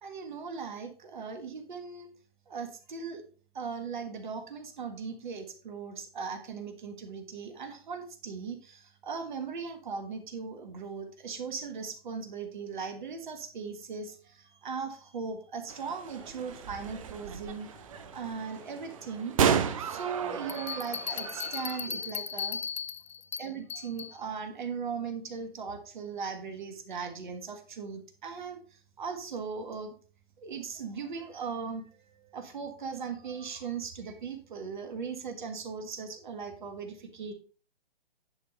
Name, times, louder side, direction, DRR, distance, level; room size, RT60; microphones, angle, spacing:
voice 1, 0.0-2.1 2.5-3.2 3.5-17.7 18.1-19.4 19.8-22.6 23.4-29.9 30.4-37.3, right 5 dB, 50° right, 6 dB, 1.5 m, -38 dB
sound 1, 15.7-21.9, right 7 dB, 35° right, 0.6 m, -33 dB
sound 2, 16.1-22.7, left 3 dB, 5° left, 1.9 m, -57 dB
sound 3, 20.5-24.2, left 7 dB, 80° left, 0.5 m, -37 dB
10.0 x 3.7 x 5.3 m, 0.39 s
figure-of-eight pair, 130°, 31 cm